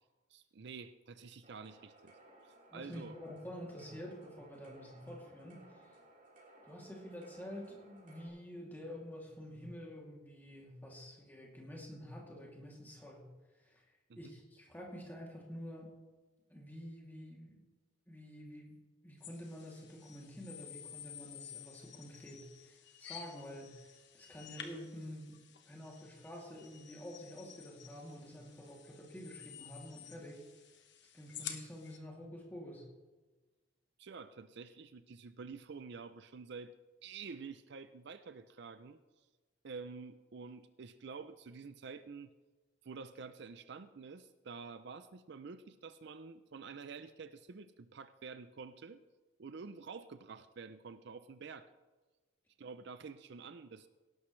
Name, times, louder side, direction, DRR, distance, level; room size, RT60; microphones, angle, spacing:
voice 1, 0.3-2.1 2.4-3.1 14.1-14.3 34.0-36.7 37.0-39.0 39.6-42.3 42.8-49.0 49.4-51.7 52.6-53.9, right 5 dB, 55° right, 12 dB, 0.5 m, -49 dB
sound 1, 1.4-8.3, right 1 dB, 40° right, 3.8 m, -61 dB
voice 2, 2.7-6.0 6.6-13.3 13.6-13.9 14.2-15.9 16.5-17.6 18.1-18.8 19.0-25.4 25.6-30.4 31.1-32.9, equal, 10° left, -2 dB, 2.6 m, -48 dB
sound 2, 19.2-32.0, left 9 dB, 60° left, 1.3 m, -52 dB
17.5 x 12.0 x 3.2 m, 1.2 s
head